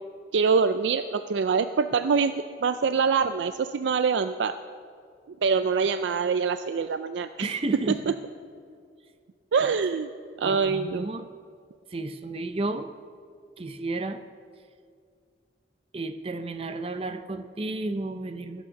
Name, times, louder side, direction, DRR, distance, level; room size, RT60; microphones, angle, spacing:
voice 1, 0.3-2.3 2.6-4.5 5.4-7.5 9.5-10.1 10.4-11.1, right 5 dB, 90° right, 11 dB, 0.4 m, -24 dB
voice 2, 7.4-8.1 9.6-9.8 10.4-11.3 11.9-12.9 13.6-14.2 15.9-18.7, right 2 dB, 30° right, 9 dB, 0.6 m, -32 dB
18.5 x 8.2 x 6.3 m, 2.2 s
head